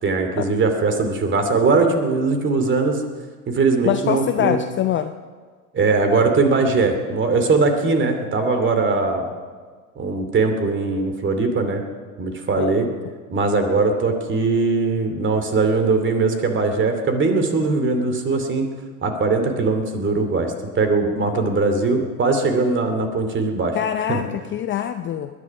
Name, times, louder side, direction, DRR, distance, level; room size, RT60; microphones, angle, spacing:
voice 1, 0.0-3.0 3.5-4.6 5.7-9.3 10.0-11.8 12.2-12.9 13.3-18.7 19.0-23.8 24.1-24.3, right 3 dB, 25° right, 6 dB, 2.7 m, -20 dB
voice 2, 3.8-5.1 12.6-12.7 23.7-25.3, left 10 dB, 25° left, 9 dB, 0.6 m, -24 dB
20.5 x 11.0 x 6.0 m, 1.5 s
hypercardioid pair, 85°, 45 cm